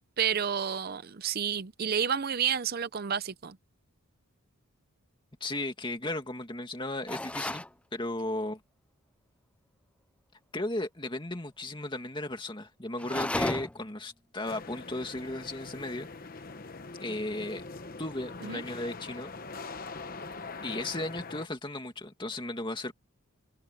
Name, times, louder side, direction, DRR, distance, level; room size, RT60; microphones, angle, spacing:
voice 1, 0.2-3.6 18.4-18.6, right 7 dB, 45° right, 0.6 m, -30 dB
voice 2, 5.4-7.6 7.9-8.6 10.5-16.1 17.0-17.6 18.0-19.3 20.6-22.9, left 1 dB, 20° left, 2.3 m, -35 dB
sound 1, 7.1-7.7 13.0-13.9, left 1 dB, 5° left, 0.3 m, -32 dB
sound 2, 14.4-21.5, left 3 dB, 40° left, 1.0 m, -43 dB
head